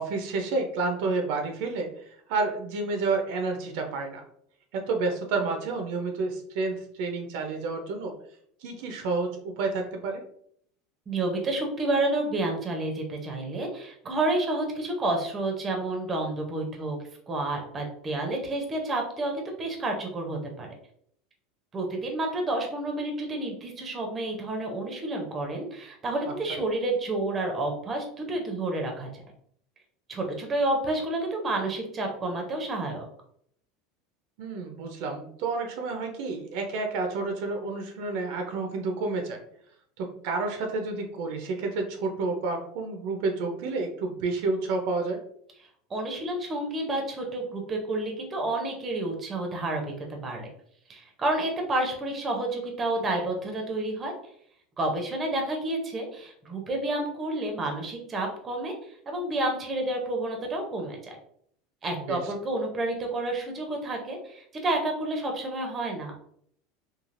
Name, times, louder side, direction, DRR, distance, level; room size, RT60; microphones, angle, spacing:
voice 1, 0.0-4.2 4.7-8.1 8.6-10.2 26.5-26.6 34.4-39.4 40.0-45.2 62.1-62.2, right 3 dB, 60° right, 4 dB, 0.5 m, -30 dB
voice 2, 11.1-17.0 17.3-20.7 21.7-29.2 30.1-33.1 45.9-50.5 50.9-54.1 54.8-58.7 59.1-61.0 61.8-66.1, right 2 dB, 20° right, 2 dB, 0.6 m, -30 dB
3.1 x 2.4 x 2.5 m, 0.66 s
supercardioid pair, 150°, 0 cm